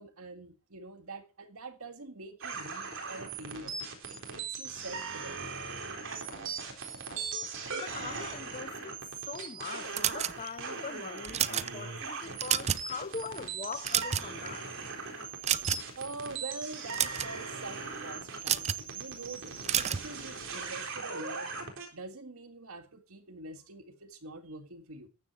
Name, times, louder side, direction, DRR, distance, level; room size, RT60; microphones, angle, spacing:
voice 1, 0.0-3.8 4.1-5.4 16.0-21.6 21.9-25.1, right 3 dB, 75° right, 1.9 m, -45 dB
sound 1, 2.4-21.9, right 4 dB, 60° right, 4.0 m, -39 dB
voice 2, 7.7-14.7, left 5 dB, 35° left, 0.7 m, -42 dB
sound 2, 9.9-10.7 11.2-11.7 12.2-12.9 13.2-13.4 13.7-14.5 15.4-16.0 16.7-17.3 18.4-18.8 19.6-20.1, right 9 dB, 30° right, 0.5 m, -29 dB
14.5 x 10.0 x 4.4 m
head